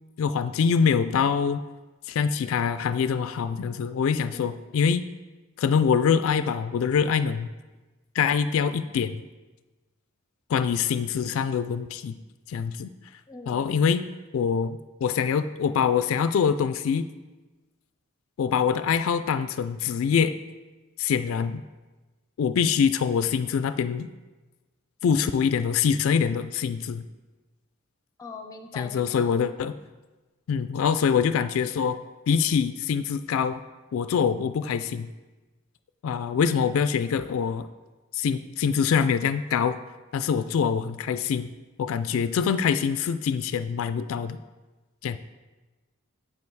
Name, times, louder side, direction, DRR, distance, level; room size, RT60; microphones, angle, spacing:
voice 1, 0.2-1.6 2.1-5.1 5.6-7.5 8.2-9.2 10.5-12.1 12.5-12.9 13.5-14.0 14.3-17.1 18.4-20.3 21.0-21.6 22.4-24.1 25.0-27.0 28.8-29.7 30.5-32.0 32.3-33.6 33.9-35.1 36.0-37.7 38.1-39.8 40.1-41.5 41.8-44.4 45.0-45.2, left 6 dB, 75° left, 11 dB, 0.3 m, -24 dB
voice 2, 4.3-4.7 13.3-13.7 28.2-29.4, left 3 dB, 15° left, 5 dB, 0.5 m, -42 dB
7.1 x 5.4 x 4.6 m, 1.2 s
head